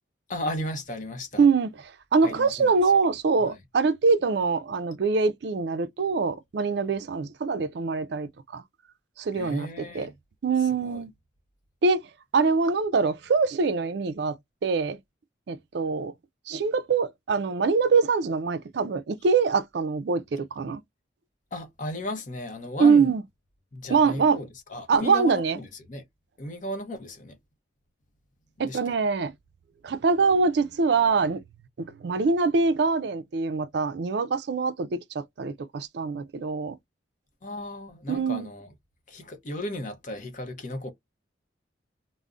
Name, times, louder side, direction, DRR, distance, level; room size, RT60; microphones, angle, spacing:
voice 1, 0.3-1.5 2.2-2.7 3.4-3.6 9.3-10.1 10.8-11.0 21.5-23.1 23.7-26.1 26.4-27.4 28.6-28.8 37.4-38.7 39.1-40.9, left 1 dB, 40° left, 0.6 m, -35 dB
voice 2, 1.4-1.7 2.1-8.6 9.2-10.1 10.4-11.1 11.8-12.0 12.3-14.4 14.6-15.0 15.5-16.1 16.5-20.8 22.8-23.2 23.9-24.4 24.9-25.6 28.6-29.3 29.8-31.4 32.0-36.8 38.1-38.5, right 4 dB, 60° right, 0.4 m, -24 dB
2.4 x 2.0 x 3.6 m
head